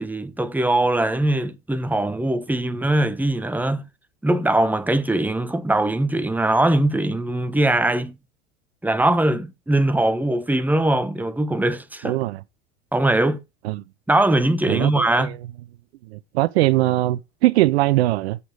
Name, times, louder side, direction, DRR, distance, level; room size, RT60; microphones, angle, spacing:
voice 1, 0.0-3.8 4.2-8.1 8.8-12.2 12.9-13.4 14.1-15.3, right 1 dB, 5° right, 1.1 m, -21 dB
voice 2, 12.0-12.4 13.6-13.8 14.7-15.3 16.1-18.4, right 17 dB, 70° right, 0.5 m, -21 dB
8.4 x 6.8 x 4.9 m
hypercardioid pair, 75°, 33 cm